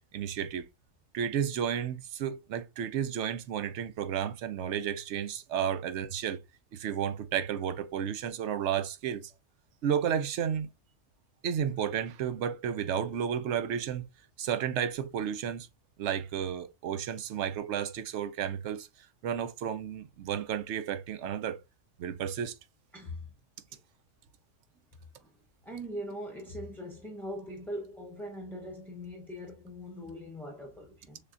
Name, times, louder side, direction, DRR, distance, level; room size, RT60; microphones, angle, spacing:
voice 1, 0.1-0.7 1.1-6.4 6.7-9.3 9.8-10.7 11.4-14.1 14.4-15.7 16.0-18.9 19.2-21.6 22.0-22.6, right 8 dB, 75° right, 0.9 m, -32 dB
voice 2, 22.9-23.3 23.7-23.8 25.2-25.3 25.6-31.2, equal, ahead, 0.6 m, -41 dB
6.6 x 2.2 x 2.5 m
omnidirectional pair, 1.2 m